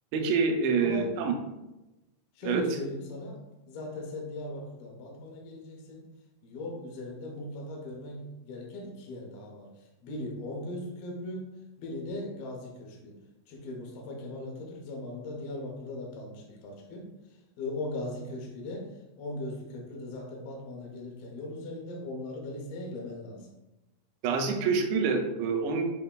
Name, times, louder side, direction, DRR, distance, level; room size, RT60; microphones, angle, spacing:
voice 1, 0.1-1.3 2.4-2.6 24.2-25.8, right 5 dB, 85° right, 4 dB, 2.8 m, -26 dB
voice 2, 0.8-1.3 2.4-3.4 3.7-6.0 6.4-9.7 10.0-11.5 11.8-13.1 13.5-17.0 17.6-18.9 19.2-23.5, left 1 dB, 80° left, -2 dB, 2.2 m, -38 dB
7.9 x 2.7 x 2.2 m, 0.97 s
omnidirectional pair, 5.2 m